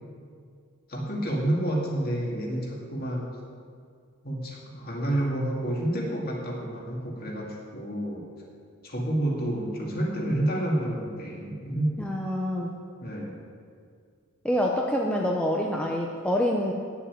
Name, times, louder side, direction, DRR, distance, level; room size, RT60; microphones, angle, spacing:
voice 1, 0.9-3.3 4.2-8.2 8.8-11.9 13.0-13.3, right 1 dB, 40° left, -3 dB, 2.3 m, -29 dB
voice 2, 12.0-12.7 14.4-16.7, equal, 5° left, -2 dB, 0.6 m, -26 dB
9.7 x 7.2 x 8.7 m, 2.2 s
head